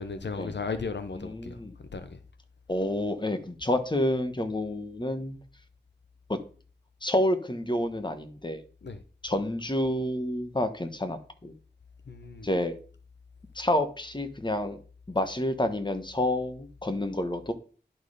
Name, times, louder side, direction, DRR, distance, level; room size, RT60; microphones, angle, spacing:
voice 1, 0.0-1.6 1.9-2.2 8.8-9.0 12.1-12.5, left 4 dB, 80° left, 0.8 m, -35 dB
voice 2, 1.2-1.7 2.7-5.4 6.3-6.4 7.0-8.6 9.2-11.5 12.4-12.7 13.5-14.8 15.1-17.5, left 1 dB, 25° left, 1.3 m, -29 dB
11.0 x 4.4 x 4.9 m
wide cardioid pair, 40°, 18 cm